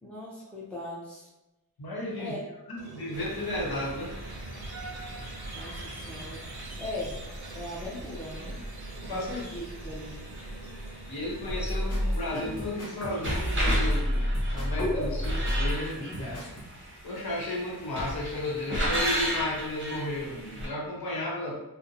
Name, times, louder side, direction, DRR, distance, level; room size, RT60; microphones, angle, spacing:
voice 1, 0.0-1.3 2.2-2.4 5.5-6.4 6.8-7.2 7.5-8.6 9.1-10.2, left 1 dB, 5° left, -6 dB, 0.6 m, -39 dB
voice 2, 1.8-2.4 2.7-4.1 9.0-9.3 11.1-16.0 17.0-21.6, left 1 dB, 75° left, -4 dB, 0.8 m, -33 dB
Squeak, 2.8-11.5, right 3 dB, 85° right, 0.5 m, -46 dB
sound 1, 3.1-20.7, right 1 dB, 30° right, 0.7 m, -36 dB
sound 2, 11.5-16.6, equal, 40° left, 0.8 m, -29 dB
2.6 x 2.1 x 2.5 m, 0.98 s
wide cardioid pair, 65°, 37 cm